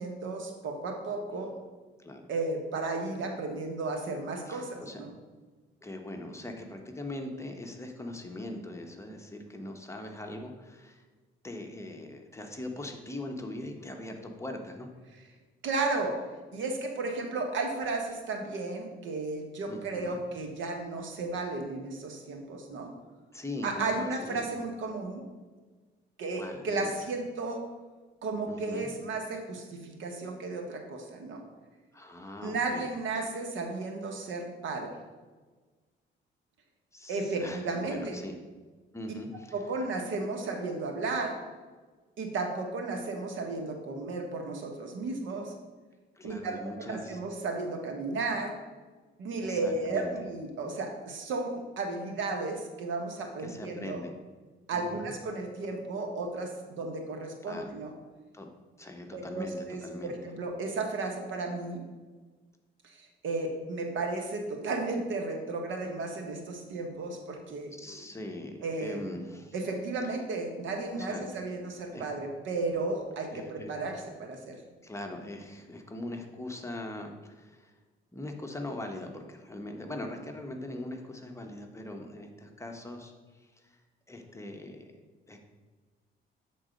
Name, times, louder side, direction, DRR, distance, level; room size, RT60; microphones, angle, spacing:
voice 1, 0.0-1.5 2.3-5.1 15.6-16.2 16.5-22.9 23.6-25.2 26.2-27.6 28.2-31.4 32.4-34.9 37.1-38.2 39.5-41.4 42.2-45.5 46.2-48.5 49.2-54.0 54.7-57.9 59.1-61.8 62.8-67.7 68.6-69.0 69.5-74.6, right 3 dB, 75° right, 3 dB, 1.2 m, -34 dB
voice 2, 4.5-5.0 5.8-11.0 11.4-14.9 19.7-20.2 23.3-24.5 26.3-26.9 28.5-28.9 31.9-32.9 36.9-38.4 38.9-39.5 46.1-47.2 49.4-50.1 53.4-54.1 54.7-55.1 57.5-57.7 58.3-58.5 58.8-60.2 67.7-69.5 70.9-71.2 71.9-72.1 73.3-73.7 74.8-77.7 78.1-83.8 84.1-84.9 85.3-85.4, left 1 dB, 15° left, 3 dB, 0.9 m, -41 dB
7.8 x 3.8 x 5.1 m, 1.3 s
cardioid pair, 90°, 20 cm